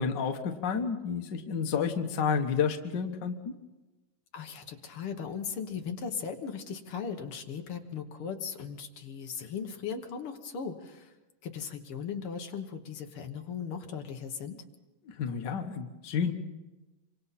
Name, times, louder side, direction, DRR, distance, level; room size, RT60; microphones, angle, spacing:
voice 1, 0.0-3.3 15.0-16.3, left 6 dB, 80° left, 5 dB, 0.9 m, -30 dB
voice 2, 4.3-11.1 11.4-14.6, left 6 dB, 55° left, 4 dB, 1.6 m, -38 dB
26.5 x 25.0 x 4.2 m, 1.1 s
omnidirectional pair, 4.0 m